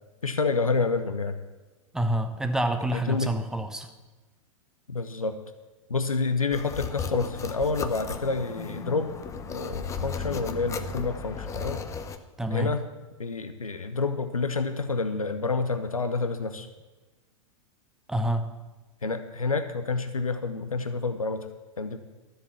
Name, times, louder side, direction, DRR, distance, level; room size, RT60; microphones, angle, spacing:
voice 1, 0.2-1.4 2.9-3.3 4.9-5.4 5.9-9.1 9.5-11.8 12.5-12.8 13.2-16.7 19.0-21.5 21.8-22.0, left 4 dB, 80° left, 9 dB, 0.9 m, -28 dB
voice 2, 1.9-3.9 12.4-12.7 18.1-18.5, right 1 dB, 5° right, 6 dB, 1.1 m, -27 dB
sound 1, 6.5-12.2, left 5 dB, 15° left, 0.8 m, -35 dB
13.0 x 7.7 x 7.2 m, 1.2 s
figure-of-eight pair, 100°, 18 cm